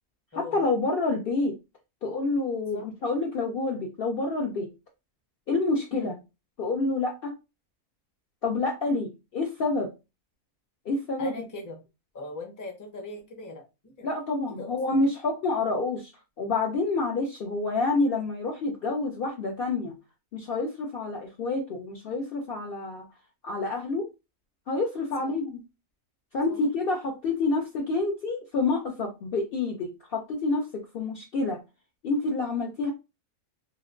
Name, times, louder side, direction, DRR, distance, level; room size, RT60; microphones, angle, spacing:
voice 1, 0.3-1.5 2.0-4.7 5.5-6.1 6.6-7.3 8.4-9.9 10.8-11.3 14.0-16.1 16.4-19.9 20.3-23.0 23.4-24.1 24.7-25.6 26.3-31.6 32.0-32.9, left 3 dB, 80° left, 1 dB, 0.5 m, -28 dB
voice 2, 11.2-11.8 12.1-14.1 14.5-15.0 25.2-25.3 26.5-26.6, left 2 dB, 25° left, 1 dB, 0.4 m, -40 dB
3.1 x 2.9 x 2.5 m, 0.26 s
omnidirectional pair, 1.7 m